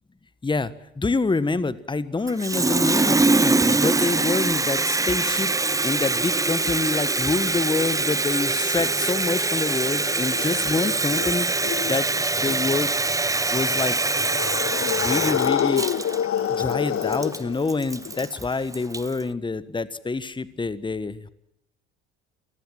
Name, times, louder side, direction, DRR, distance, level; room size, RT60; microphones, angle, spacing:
voice 1, 0.4-5.5 5.8-11.5 11.8-12.1 12.3-12.9 13.5-14.0 15.0-15.9 16.5-21.3, left 3 dB, 15° left, 16 dB, 1.5 m, -26 dB
Water tap faucet, 2.3-19.2, right 3 dB, 10° right, 0.8 m, -23 dB
sound 1, 7.9-18.3, left 9 dB, 40° left, 1.5 m, -29 dB
27.0 x 19.0 x 7.7 m, 0.82 s
hypercardioid pair, 65°, 33 cm